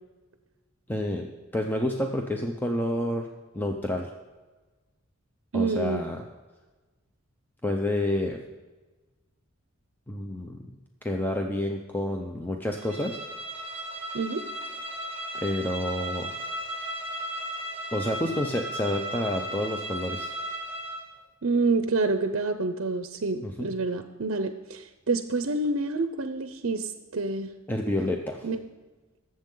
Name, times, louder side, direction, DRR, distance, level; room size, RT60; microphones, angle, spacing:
voice 1, 0.9-1.3 1.5-3.3 3.5-4.1 5.5-6.2 7.6-8.4 10.1-10.6 11.0-13.2 15.3-16.4 17.9-20.3 23.4-23.7 27.7-28.5, left 1 dB, 10° left, 2 dB, 0.6 m, -29 dB
voice 2, 5.5-6.0 14.1-14.4 21.4-27.5 28.4-28.6, right 3 dB, 65° right, 8 dB, 0.6 m, -27 dB
Bowed string instrument, 12.8-21.1, right 1 dB, 10° right, 1.9 m, -36 dB
19.5 x 7.5 x 3.8 m, 1.3 s
head